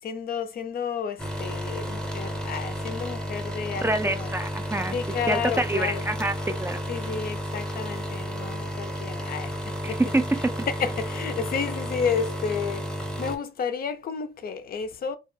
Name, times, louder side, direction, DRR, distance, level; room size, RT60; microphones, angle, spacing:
voice 1, 0.0-4.4 4.9-6.1 6.9-9.5 9.9-10.0 10.7-12.9 13.2-15.2, left 6 dB, 50° left, 0.4 m, -31 dB
sound 1, 1.2-13.4, equal, 5° left, 0.7 m, -32 dB
voice 2, 3.8-4.9 5.3-6.8 9.8-10.5, right 2 dB, 10° right, 0.3 m, -26 dB
2.3 x 2.2 x 3.1 m
cardioid pair, 90°, 20 cm